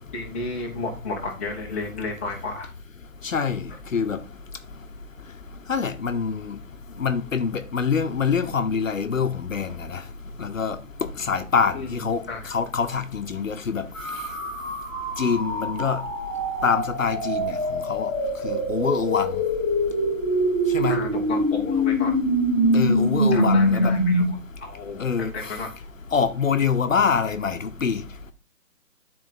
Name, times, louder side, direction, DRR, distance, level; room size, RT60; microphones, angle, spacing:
voice 1, 0.1-2.7 11.7-12.5 20.9-22.1 23.3-25.0 25.3-25.7, left 3 dB, 10° left, 0.9 m, -33 dB
voice 2, 3.2-4.2 5.7-6.6 7.0-10.0 10.4-10.8 11.2-12.2 12.5-13.8 15.2-16.0 16.6-18.1 18.4-19.3 20.7-21.0 22.7-23.9 25.0-25.3 26.1-28.0, left 6 dB, 60° left, 1.1 m, -25 dB
sound 1, 14.0-24.3, equal, 15° right, 0.8 m, -24 dB
10.5 x 4.4 x 4.0 m
hypercardioid pair, 165°, 45 cm